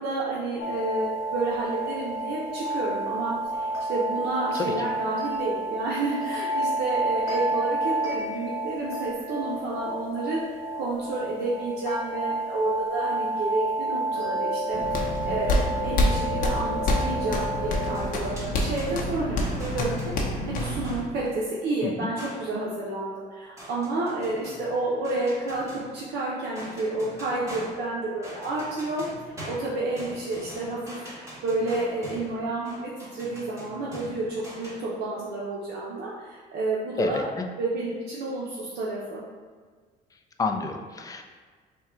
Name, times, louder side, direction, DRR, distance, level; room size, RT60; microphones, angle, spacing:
voice 1, 0.0-10.4 10.8-29.0 29.4-39.2, right 2 dB, 75° right, -5 dB, 0.7 m, -30 dB
sound 1, 0.6-18.1, right 1 dB, 70° left, 1.1 m, -30 dB
voice 2, 4.5-4.9 21.8-21.9 37.0-37.4 40.4-41.2, left 4 dB, 20° left, 4 dB, 0.4 m, -29 dB
sound 2, 14.7-21.0, left 1 dB, 55° left, 0.7 m, -27 dB
sound 3, 17.9-21.3 22.2-22.6 23.6-26.2 26.5-34.8, equal, 15° right, 1.3 m, -43 dB
3.7 x 2.2 x 4.3 m, 1.5 s
cardioid pair, 110°, 17 cm